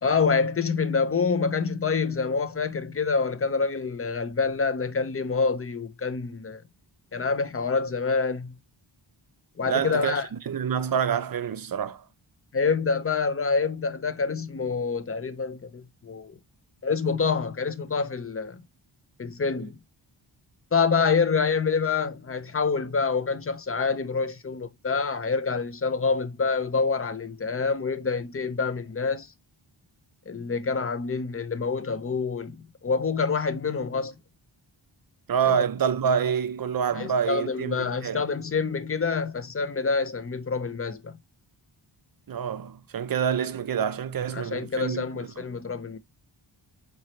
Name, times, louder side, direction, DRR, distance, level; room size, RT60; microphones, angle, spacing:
voice 1, 0.0-6.6 7.1-8.6 9.6-10.3 12.5-16.4 16.8-18.6 19.2-19.8 20.7-29.3 30.3-34.1 35.5-35.6 36.9-41.2 44.3-46.0, left 5 dB, 30° left, 0.5 m, -27 dB
voice 2, 9.6-12.0 35.3-38.2 42.3-45.1 45.4-45.5, right 7 dB, 45° right, 0.6 m, -27 dB
4.5 x 3.0 x 3.0 m
wide cardioid pair, 80°, 48 cm